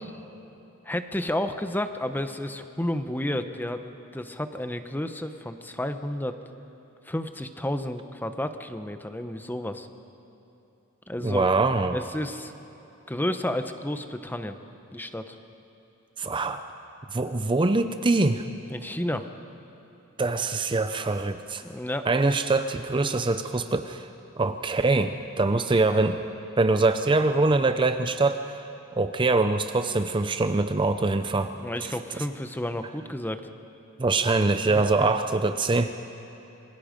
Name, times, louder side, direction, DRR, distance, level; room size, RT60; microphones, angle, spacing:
voice 1, 0.9-6.3 7.1-9.9 11.1-11.5 11.9-12.5 13.1-14.6 14.9-15.4 18.7-19.3 21.6-22.1 31.4-33.4 34.7-35.1, left 1 dB, 10° left, 8 dB, 0.8 m, -31 dB
voice 2, 11.2-12.0 16.2-16.6 17.1-18.4 20.2-21.6 22.1-24.1 24.4-26.2 26.6-28.7 29.0-31.5 31.8-31.9 34.0-35.9, right 3 dB, 25° right, 9 dB, 0.6 m, -24 dB
27.0 x 22.5 x 5.2 m, 2.9 s
head